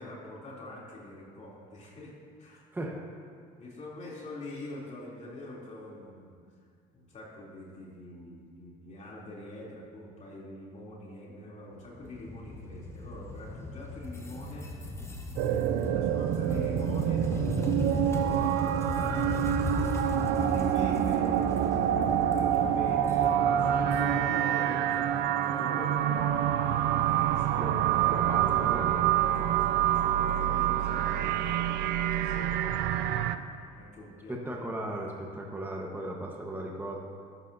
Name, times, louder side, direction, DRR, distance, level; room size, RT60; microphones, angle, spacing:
voice 1, 0.0-2.6 3.6-6.4 6.9-14.7 15.4-19.3 19.9-26.3 27.0-34.6, left 2 dB, 45° left, -5 dB, 3.2 m, -45 dB
sound 1, 11.8-24.3, left 1 dB, 15° left, 1.3 m, -36 dB
sound 2, 15.4-33.4, right 11 dB, 85° right, 0.5 m, -27 dB
sound 3, 22.6-31.6, right 6 dB, 30° right, 0.6 m, -49 dB
voice 2, 28.1-28.9 34.3-37.0, right 1 dB, 10° right, -1 dB, 1.2 m, -36 dB
13.0 x 12.0 x 2.7 m, 2.1 s
cardioid pair, 110°, 17 cm